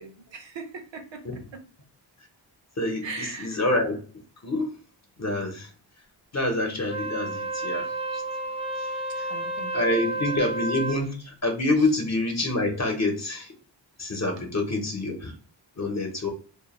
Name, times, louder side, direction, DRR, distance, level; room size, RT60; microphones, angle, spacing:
voice 1, 0.0-1.6 3.0-3.6 9.3-10.3 11.8-11.9, right 4 dB, 70° right, 5 dB, 0.6 m, -40 dB
voice 2, 3.4-4.0 4.4-4.8 5.2-5.7 6.3-8.2 8.8-9.3 9.7-13.5 14.0-15.3 15.8-16.3, left 2 dB, 35° left, 2 dB, 0.7 m, -27 dB
Wind instrument woodwind instrument, 6.8-11.1, right 2 dB, 15° right, 0.4 m, -31 dB
2.2 x 2.1 x 2.9 m, 0.39 s
wide cardioid pair, 60°, 45 cm